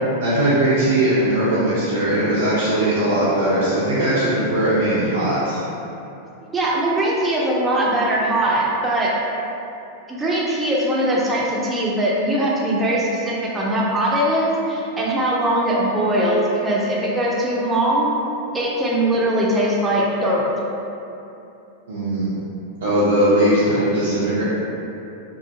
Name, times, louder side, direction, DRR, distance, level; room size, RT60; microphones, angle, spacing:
voice 1, 0.2-5.6 21.9-22.3 22.8-24.4, right 1 dB, 75° right, -10 dB, 0.5 m, -19 dB
voice 2, 6.5-9.1 10.1-18.1 18.5-20.4, right 1 dB, 15° right, -5 dB, 0.4 m, -21 dB
2.8 x 2.1 x 2.5 m, 2.8 s
hypercardioid pair, 100°, 0 cm